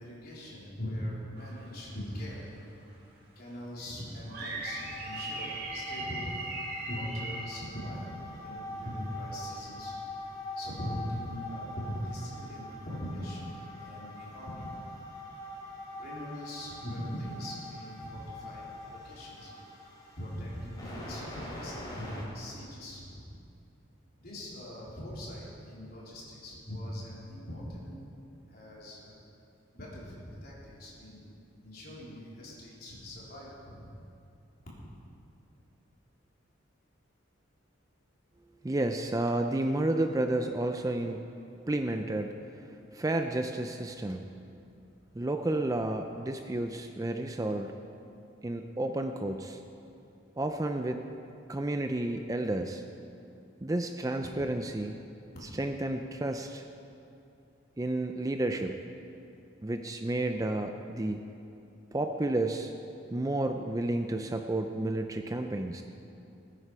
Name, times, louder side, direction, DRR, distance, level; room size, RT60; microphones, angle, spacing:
voice 1, 0.0-2.5 3.4-6.3 6.8-10.0 10.6-13.5 13.8-14.7 15.9-19.5 20.2-23.3 24.2-28.0 28.5-29.1 29.7-31.2 31.6-33.9, equal, 50° left, -6 dB, 3.8 m, -41 dB
sound 1, 1.4-1.9 2.3-2.4 4.2-7.5, right 2 dB, 50° right, 1.9 m, -39 dB
sound 2, 4.6-22.2, left 1 dB, 20° left, 3.2 m, -44 dB
voice 2, 38.6-41.2 41.7-42.4 42.9-44.3 45.2-47.7 48.4-49.6 50.4-51.0 51.5-52.8 53.6-55.1 55.6-56.7 57.8-58.8 59.6-61.3 61.9-62.7 63.1-65.8, right 1 dB, 15° right, 5 dB, 0.4 m, -31 dB
19.5 x 9.9 x 4.8 m, 2.7 s
head